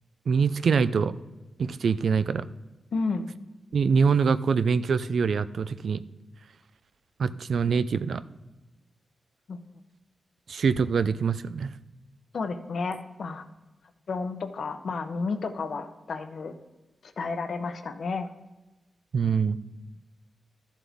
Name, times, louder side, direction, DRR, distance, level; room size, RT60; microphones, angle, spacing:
voice 1, 0.3-1.1 1.6-2.4 3.7-6.0 7.2-8.2 10.5-11.7 19.1-19.6, right 5 dB, 60° right, 15 dB, 0.4 m, -24 dB
voice 2, 2.9-3.3 9.5-9.6 12.3-13.4 14.1-16.5 17.2-18.3, left 4 dB, 55° left, 9 dB, 0.8 m, -31 dB
13.5 x 7.4 x 3.5 m, 1.1 s
wide cardioid pair, 155°, 0 cm